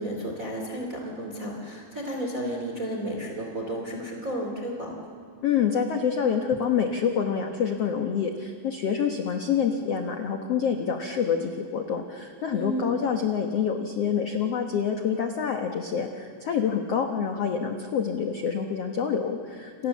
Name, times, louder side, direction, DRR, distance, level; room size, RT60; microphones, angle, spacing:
voice 1, 0.0-5.1 12.5-13.0, equal, 25° right, 1 dB, 2.6 m, -32 dB
voice 2, 5.4-19.9, left 7 dB, 75° left, 5 dB, 1.4 m, -27 dB
29.0 x 27.5 x 7.3 m, 2.2 s
omnidirectional pair, 4.6 m